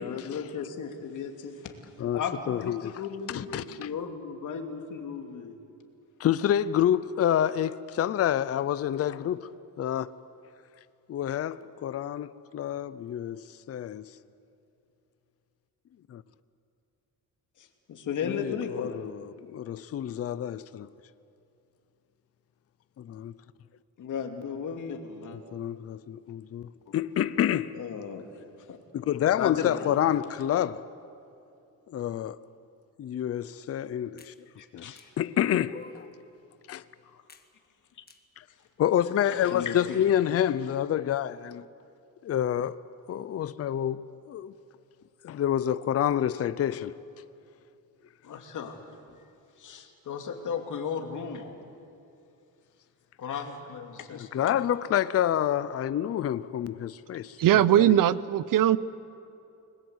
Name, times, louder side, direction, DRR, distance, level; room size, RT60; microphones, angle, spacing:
voice 1, 0.0-1.7 2.1-2.7 3.0-5.6 17.6-19.0 24.0-25.4 26.9-27.0 27.7-28.2 28.6-28.8 29.4-30.0 34.6-35.1 37.0-37.2 38.0-38.1 38.5-38.6 39.2-40.1 48.2-48.8 49.1-49.2 49.6-51.6 53.2-54.6, left 6 dB, 60° left, 2.6 m, -36 dB
voice 2, 2.5-2.9 3.3-3.9 6.2-9.5 9.8-10.1 11.1-13.4 13.7-14.1 16.1-16.2 18.2-20.9 23.0-23.3 25.5-27.7 28.9-30.8 31.9-32.4 33.0-34.3 34.7-36.0 36.7-36.8 38.4-38.5 38.8-41.6 42.2-42.8 43.1-44.5 45.2-46.9 54.3-57.4 57.8-57.9, left 10 dB, 40° left, 0.6 m, -28 dB
sound 1, 34.2-34.4 35.0-35.1 35.7-36.2 37.3-37.5 38.1-38.2 38.8-39.3, left 5 dB, 25° left, 1.4 m, -47 dB
voice 3, 57.4-58.8, right 12 dB, 65° right, 0.8 m, -20 dB
30.0 x 20.5 x 8.1 m
cardioid pair, 170°, 35 cm